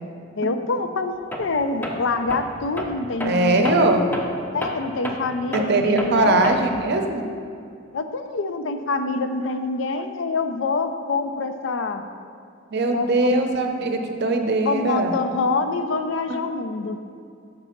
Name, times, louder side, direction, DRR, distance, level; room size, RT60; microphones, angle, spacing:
voice 1, 0.4-3.8 4.5-6.4 7.9-12.0 12.9-13.4 14.6-17.0, left 3 dB, 70° left, 8 dB, 0.5 m, -26 dB
Tools, 1.3-1.6 1.8-6.9, equal, 10° left, 0.6 m, -32 dB
voice 2, 3.2-4.1 5.5-7.2 12.7-15.1 16.4-16.5, right 2 dB, 55° right, 4 dB, 0.6 m, -21 dB
6.6 x 4.1 x 5.8 m, 2.4 s
head